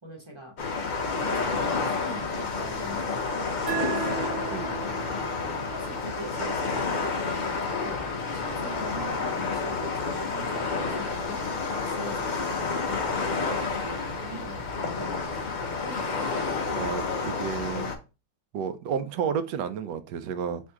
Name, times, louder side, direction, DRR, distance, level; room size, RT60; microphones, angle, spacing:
voice 1, 0.0-0.5 1.0-4.3 5.6-11.5 11.8-15.5 15.8-16.3, right 1 dB, 20° right, 0.8 m, -43 dB
sound 1, 0.6-18.0, left 4 dB, 85° left, 0.4 m, -30 dB
sound 2, 3.7-6.9, right 8 dB, 55° right, 1.2 m, -36 dB
voice 2, 4.5-4.9 16.7-17.9 18.5-20.6, right 7 dB, 85° right, 1.2 m, -31 dB
3.5 x 2.6 x 4.5 m
omnidirectional pair, 1.8 m